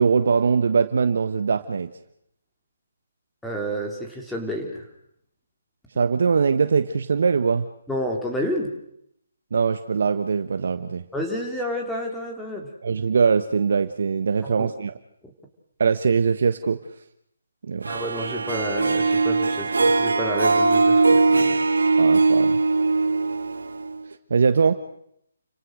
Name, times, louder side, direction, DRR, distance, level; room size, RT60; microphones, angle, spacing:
voice 1, 0.0-1.9 6.0-7.7 9.5-11.0 12.8-14.9 15.8-16.8 17.6-17.9 22.0-22.6 24.3-24.7, right 5 dB, 65° right, 9 dB, 1.3 m, -21 dB
voice 2, 3.4-4.8 7.9-8.7 11.1-12.7 14.4-14.7 17.9-21.6, equal, 5° left, 0 dB, 3.5 m, -30 dB
Harp, 17.8-24.1, right 3 dB, 85° right, 2.0 m, -20 dB
30.0 x 17.5 x 6.5 m, 0.74 s
hypercardioid pair, 160°, 0 cm